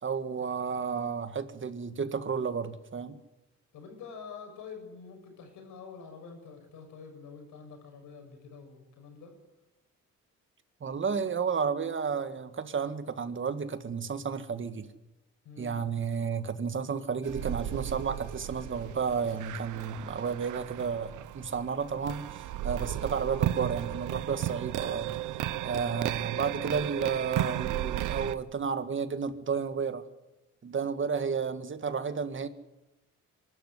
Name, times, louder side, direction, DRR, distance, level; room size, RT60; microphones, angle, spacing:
voice 1, 0.0-3.2 10.8-14.9 15.6-25.1 25.6-30.0 30.6-32.5, right 6 dB, 40° right, 10 dB, 1.9 m, -32 dB
voice 2, 3.7-9.3 15.4-15.8, left 5 dB, 85° left, 4 dB, 6.8 m, -47 dB
sound 1, 17.2-28.4, right 13 dB, 80° right, 0.9 m, -34 dB
24.0 x 13.0 x 9.7 m, 0.96 s
cardioid pair, 90°, 30 cm